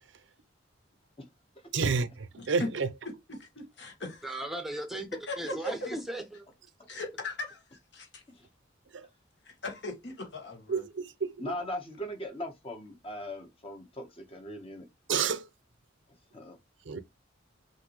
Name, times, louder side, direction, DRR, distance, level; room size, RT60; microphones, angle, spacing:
voice 1, 1.7-2.9 8.9-9.1 10.7-11.3 15.1-15.4 16.9-17.0, right 5 dB, 70° right, 0.6 m, -29 dB
voice 2, 2.4-2.7 3.0-4.3 5.3-5.9 6.9-8.2 9.4-10.9, left 2 dB, 65° left, 1.4 m, -39 dB
voice 3, 4.2-6.4, right 1 dB, ahead, 0.8 m, -38 dB
voice 4, 11.4-14.8 16.3-16.6, left 1 dB, 30° left, 1.1 m, -39 dB
5.7 x 2.6 x 3.0 m
head